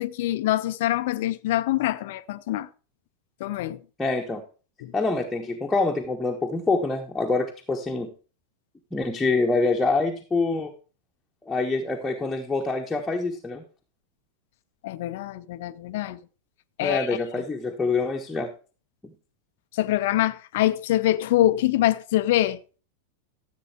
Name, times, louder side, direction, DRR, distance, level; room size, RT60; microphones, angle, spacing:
voice 1, 0.0-2.7 3.4-3.8 4.8-4.9 14.8-16.2 16.8-17.1 19.7-22.8, left 14 dB, 50° left, 0.6 m, -24 dB
voice 2, 4.0-4.4 4.9-8.1 8.9-10.7 11.4-13.6 16.8-18.5 19.0-19.1, left 3 dB, 10° left, 1.3 m, -25 dB
14.5 x 7.7 x 3.5 m
figure-of-eight pair, 90°, 0 cm